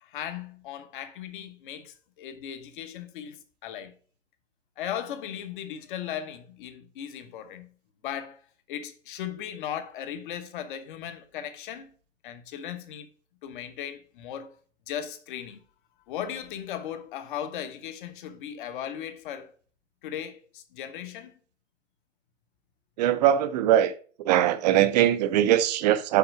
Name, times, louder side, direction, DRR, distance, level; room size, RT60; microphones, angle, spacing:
voice 1, 0.0-3.9 4.8-7.7 8.0-8.4 8.7-11.9 12.2-13.1 13.4-14.5 14.9-15.6 16.1-19.5 20.0-21.3, left 9 dB, 40° left, 1.1 m, -37 dB
voice 2, 23.0-23.9 24.2-26.2, right 11 dB, 35° right, 0.6 m, -21 dB
5.8 x 4.5 x 6.0 m
hypercardioid pair, 135°, 38 cm